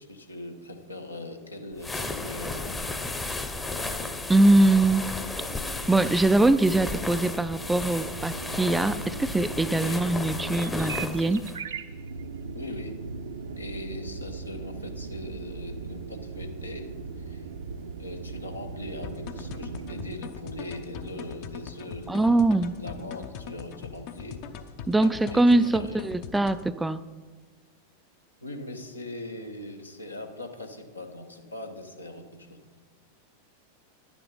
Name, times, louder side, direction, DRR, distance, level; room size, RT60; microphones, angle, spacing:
voice 1, 0.1-2.8 9.7-10.0 12.5-13.0 13.6-17.5 18.0-22.3 22.8-24.4 24.7-24.8 25.0-26.0 28.4-32.8, left 1 dB, 80° left, 4 dB, 1.1 m, -40 dB
sound 1, 1.8-11.6, left 2 dB, 10° left, 0.8 m, -34 dB
voice 2, 4.3-5.0 5.9-11.5 22.1-22.8 24.9-27.0, right 2 dB, 5° right, 13 dB, 0.3 m, -22 dB
sound 2, 5.2-20.2, right 4 dB, 65° right, 0.7 m, -39 dB
sound 3, 19.0-26.7, left 7 dB, 45° left, 0.7 m, -41 dB
11.0 x 9.8 x 3.9 m, 1.4 s
figure-of-eight pair, 90°, 0 cm